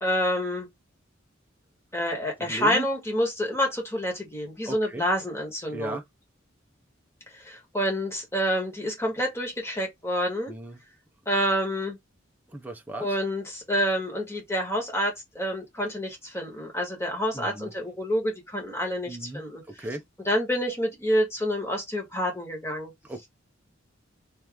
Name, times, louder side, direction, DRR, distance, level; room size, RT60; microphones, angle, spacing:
voice 1, 0.0-0.7 1.9-6.0 7.3-10.5 11.2-12.0 13.0-19.6 20.2-22.9, equal, 15° left, 1.5 m, -28 dB
voice 2, 2.4-2.9 4.6-5.0 5.7-6.0 10.5-10.8 12.5-13.1 17.3-17.7 19.1-19.4 19.8-20.0 23.1-23.3, right 1 dB, 10° right, 0.6 m, -35 dB
3.2 x 3.0 x 3.6 m
head